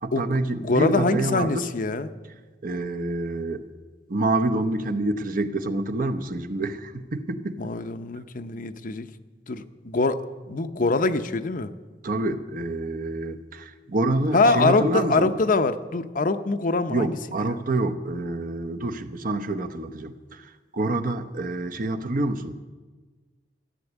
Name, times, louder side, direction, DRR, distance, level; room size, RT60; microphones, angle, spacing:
voice 1, 0.0-1.7 2.6-3.6 4.1-7.7 12.0-15.3 16.9-22.5, right 2 dB, 50° right, 8 dB, 0.9 m, -27 dB
voice 2, 0.5-2.1 7.6-9.1 9.5-10.2 10.5-11.7 14.3-17.1, left 3 dB, 50° left, 10 dB, 0.7 m, -24 dB
14.0 x 10.5 x 8.1 m, 1.3 s
head